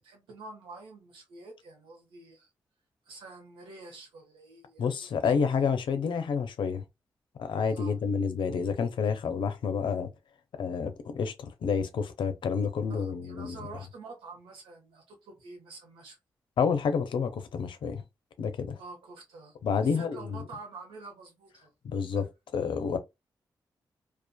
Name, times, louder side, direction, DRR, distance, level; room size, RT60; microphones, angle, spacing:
voice 1, 0.0-2.5 3.1-5.3 7.7-8.0 12.9-16.2 18.8-19.5 19.8-21.7 22.1-22.2, right 3 dB, 85° right, 0.9 m, -47 dB
voice 2, 4.8-6.8 7.4-10.1 10.6-13.6 16.6-18.0 18.4-18.8 19.6-20.4 21.8-22.3 22.5-23.0, left 6 dB, 70° left, 0.5 m, -29 dB
2.5 x 2.4 x 2.3 m
supercardioid pair, 40°, 9 cm